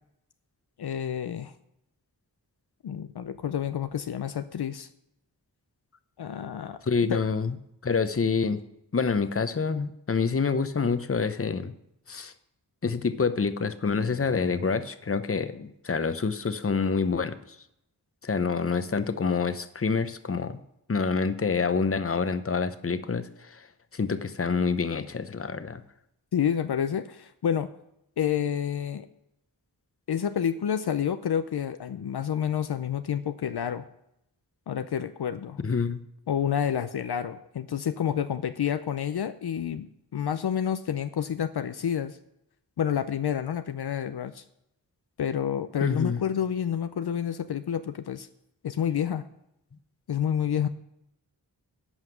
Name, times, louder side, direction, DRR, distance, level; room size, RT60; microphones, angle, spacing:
voice 1, 0.8-1.5 2.8-4.9 6.2-6.8 7.1-7.2 26.3-27.7 28.2-29.1 30.1-33.9 34.7-35.6 36.3-42.2 42.8-44.4 45.2-48.3 48.6-49.3 50.1-50.7, left 9 dB, 70° left, 10 dB, 0.6 m, -29 dB
voice 2, 6.8-7.6 7.8-8.6 8.9-11.7 12.1-12.3 12.8-17.4 18.2-20.6 20.9-23.7 23.9-25.8 35.6-36.0 45.8-46.2, left 5 dB, 35° left, 12 dB, 0.8 m, -27 dB
11.0 x 5.7 x 7.9 m, 0.80 s
cardioid pair, 55°, 40 cm